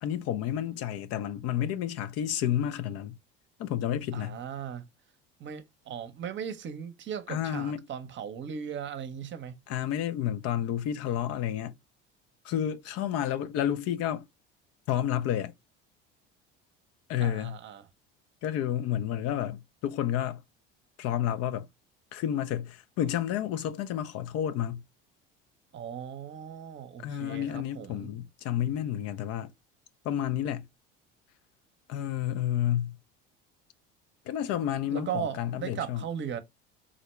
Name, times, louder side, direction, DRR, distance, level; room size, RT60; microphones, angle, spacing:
voice 1, 0.0-3.2 3.6-4.4 7.3-7.8 9.7-11.7 12.4-14.2 14.9-15.5 17.1-17.6 18.4-20.4 21.0-21.7 22.1-24.8 27.0-29.5 30.0-30.7 31.9-33.0 34.3-36.0, left 10 dB, 55° left, 0.5 m, -30 dB
voice 2, 4.1-4.8 5.4-9.5 17.2-17.9 25.7-28.1 34.9-36.4, right 8 dB, 40° right, 0.7 m, -37 dB
3.8 x 2.1 x 3.0 m
hypercardioid pair, 80°, 29 cm